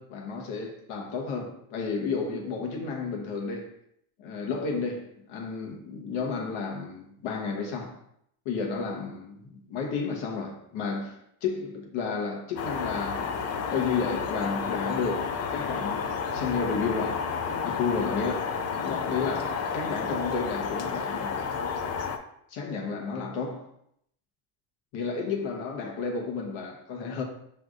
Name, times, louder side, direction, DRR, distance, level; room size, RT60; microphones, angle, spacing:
voice 1, 0.0-3.7 4.2-8.0 8.4-13.2 13.7-17.2 17.6-18.4 18.7-21.4 22.5-23.7 24.9-27.2, left 5 dB, 75° left, 1.2 m, -32 dB
sound 1, 12.6-22.2, left 6 dB, 35° left, 0.4 m, -31 dB
6.2 x 3.3 x 2.5 m
cardioid pair, 120°, 49 cm